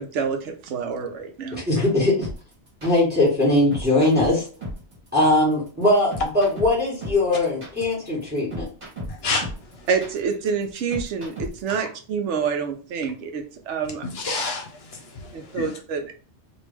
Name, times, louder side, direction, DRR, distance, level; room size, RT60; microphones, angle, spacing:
voice 1, 0.0-1.6 9.9-14.0 15.3-16.1, right 6 dB, 85° right, 6 dB, 1.0 m, -27 dB
voice 2, 1.5-2.3 2.8-4.4 5.1-8.7, left 1 dB, 10° right, -6 dB, 1.4 m, -20 dB
sound 1, 2.2-11.7, equal, 40° right, 1.5 m, -35 dB
voice 3, 9.1-9.5 14.0-15.7, left 3 dB, 65° left, 4 dB, 0.9 m, -29 dB
3.0 x 2.6 x 3.3 m, 0.38 s
omnidirectional pair, 1.2 m